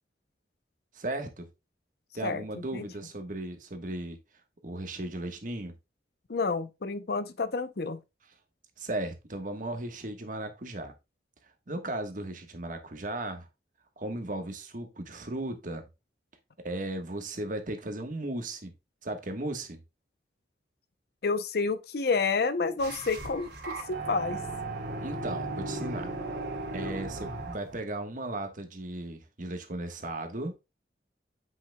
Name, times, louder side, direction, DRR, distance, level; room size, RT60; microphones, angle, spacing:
voice 1, 0.9-1.5 2.1-4.2 4.6-5.7 8.8-10.9 11.7-13.5 14.0-15.8 16.6-18.7 19.0-19.8 25.0-26.1 26.7-30.5, right 1 dB, 50° right, 1.2 m, -36 dB
voice 2, 2.2-2.9 6.3-8.0 21.2-24.4, left 4 dB, 60° left, 0.6 m, -29 dB
sound 1, 22.8-27.8, right 2 dB, 65° right, 2.6 m, -36 dB
7.9 x 5.7 x 2.2 m
head